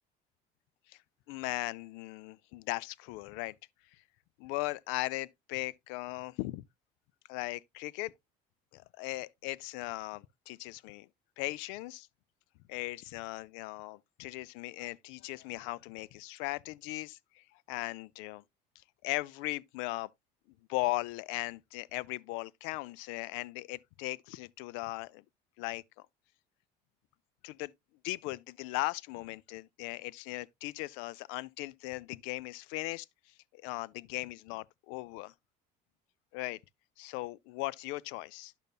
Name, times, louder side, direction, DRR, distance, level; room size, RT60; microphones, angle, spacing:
voice 1, 1.3-3.6 4.4-6.6 7.3-8.1 8.7-11.1 11.4-12.1 12.7-18.4 19.0-20.1 20.7-25.2 25.6-26.1 27.4-27.7 28.0-33.1 33.5-35.3 36.3-36.6 37.0-38.5, left 20 dB, 75° left, 0.4 m, -38 dB
10.5 x 6.6 x 2.3 m
supercardioid pair, 75°, 21 cm